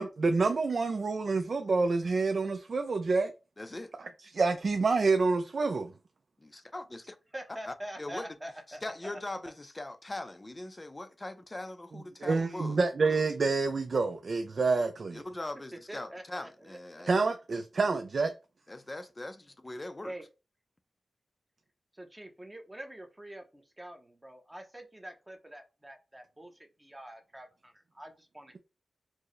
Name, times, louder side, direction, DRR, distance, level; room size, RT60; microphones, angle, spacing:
voice 1, 0.0-3.3 4.3-5.9 12.2-15.2 17.1-18.3, right 4 dB, 60° right, 0.4 m, -27 dB
voice 2, 3.6-3.9 6.4-7.2 7.7-8.3 8.7-12.8 15.1-17.1 18.7-20.1, left 2 dB, 25° left, 0.4 m, -41 dB
voice 3, 7.3-9.2 15.9-17.0 20.0-20.3 21.9-26.5 26.8-28.6, right 1 dB, 15° right, 0.7 m, -45 dB
4.5 x 2.0 x 3.1 m
wide cardioid pair, 85°, 0 cm